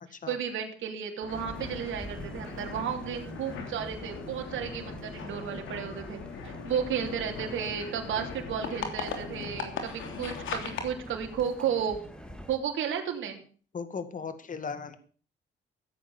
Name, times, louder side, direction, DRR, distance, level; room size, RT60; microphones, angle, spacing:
voice 1, 0.3-12.0 12.5-13.4, right 8 dB, 75° right, 3 dB, 3.1 m, -33 dB
sound 1, 1.2-10.9, left 5 dB, 80° left, 3.2 m, -39 dB
sound 2, 1.3-12.6, equal, 5° left, 2.5 m, -46 dB
voice 2, 13.7-15.0, left 5 dB, 40° left, 11 dB, 2.1 m, -37 dB
15.5 x 8.7 x 7.1 m, 0.42 s
cardioid pair, 90°, 20 cm